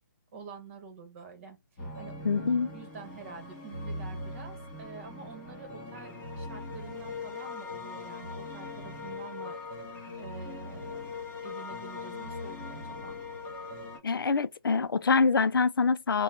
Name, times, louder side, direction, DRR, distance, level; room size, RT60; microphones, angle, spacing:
voice 1, 0.3-9.6 10.2-11.0 11.4-13.2, right 5 dB, 35° right, 1.3 m, -47 dB
sound 1, 1.8-14.0, left 3 dB, 20° left, 2.2 m, -40 dB
voice 2, 2.2-2.7 14.0-16.2, left 4 dB, 80° left, 0.4 m, -25 dB
4.3 x 2.3 x 3.6 m
hypercardioid pair, 155°, 12 cm